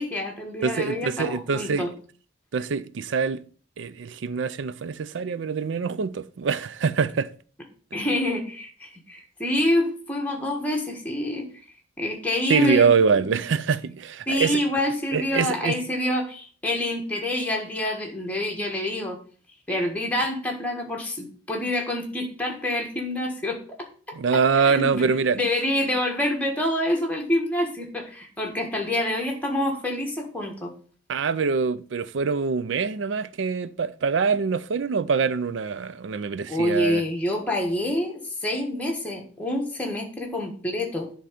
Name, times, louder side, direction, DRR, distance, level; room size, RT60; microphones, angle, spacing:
voice 1, 0.0-1.9 7.9-11.5 12.0-12.9 14.3-19.2 19.7-23.6 24.5-25.1 25.3-30.7 36.5-41.1, left 1 dB, 10° left, 1.5 m, -27 dB
voice 2, 0.6-1.9 2.5-3.4 3.8-7.3 12.5-14.6 15.1-15.8 24.1-25.4 31.1-37.0, right 5 dB, 80° right, 0.4 m, -24 dB
10.0 x 3.7 x 5.1 m
head